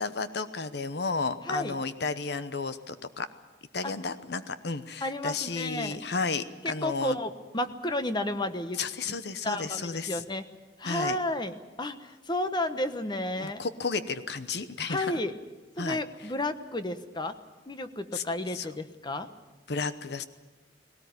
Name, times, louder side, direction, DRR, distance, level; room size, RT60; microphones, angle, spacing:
voice 1, 0.0-3.3 3.7-7.2 8.8-10.2 10.8-11.2 13.4-15.2 15.8-16.0 18.1-18.2 18.5-18.7 19.7-20.2, left 4 dB, 65° left, 12 dB, 0.9 m, -32 dB
voice 2, 5.0-6.1 6.6-8.8 9.4-10.4 10.8-13.6 14.9-15.3 15.8-17.3 17.7-19.3, left 1 dB, 25° left, 10 dB, 1.1 m, -32 dB
19.0 x 18.0 x 9.5 m, 1.2 s
head